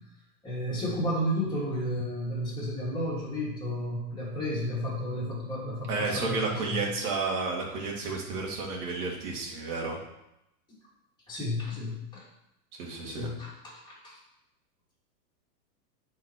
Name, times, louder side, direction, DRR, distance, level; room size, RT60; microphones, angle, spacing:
voice 1, 0.4-6.8 11.3-12.2 13.1-14.2, equal, 10° left, -6 dB, 2.3 m, -32 dB
voice 2, 5.9-10.0 12.7-13.3, right 3 dB, 60° right, -1 dB, 2.5 m, -31 dB
9.3 x 4.4 x 4.6 m, 0.86 s
supercardioid pair, 150°, 50 cm